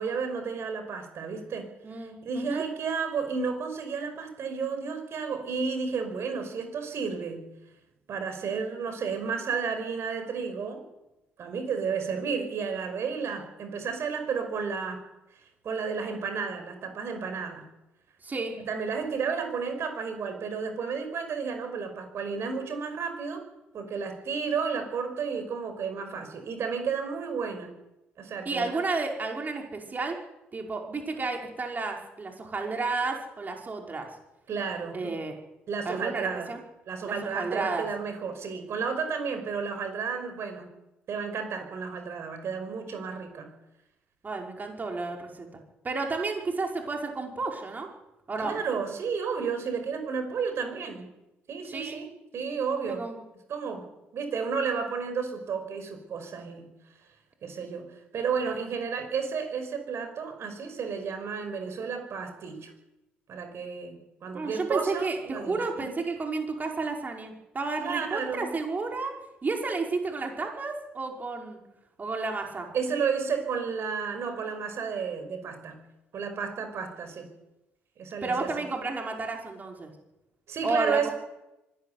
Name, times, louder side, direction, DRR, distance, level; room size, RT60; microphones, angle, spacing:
voice 1, 0.0-1.7 2.0-7.5 8.1-10.8 11.4-15.0 15.6-17.7 18.6-23.4 23.7-27.7 28.2-28.8 34.5-35.1 35.7-36.5 36.9-40.7 41.1-43.5 48.4-51.1 51.5-53.0 53.5-53.8 54.1-56.7 57.4-62.7 63.3-65.9 67.8-68.5 72.7-75.8 76.1-77.3 78.0-78.5 80.5-81.1, right 5 dB, 55° right, 7 dB, 5.5 m, -32 dB
voice 2, 1.8-2.6 18.2-18.6 28.5-30.2 30.5-34.1 34.9-35.3 35.9-36.6 37.0-37.9 44.2-45.5 45.8-47.9 48.3-48.6 51.7-52.0 52.9-53.2 64.3-69.2 69.4-71.6 72.0-72.7 78.2-79.9 80.6-81.1, right 3 dB, 35° right, 2 dB, 5.3 m, -32 dB
24.5 x 12.5 x 9.5 m, 0.96 s
hypercardioid pair, 50°, 5 cm